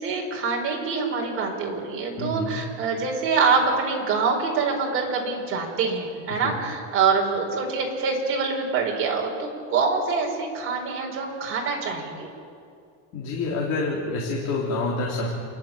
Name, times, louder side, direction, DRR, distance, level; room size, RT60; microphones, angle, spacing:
voice 1, 0.0-12.3, right 4 dB, 35° right, 0 dB, 4.9 m, -25 dB
voice 2, 2.2-2.5 6.4-6.5 13.1-15.3, left 3 dB, 45° left, -3 dB, 3.5 m, -27 dB
29.0 x 11.5 x 8.9 m, 2.4 s
cardioid pair, 155°, 36 cm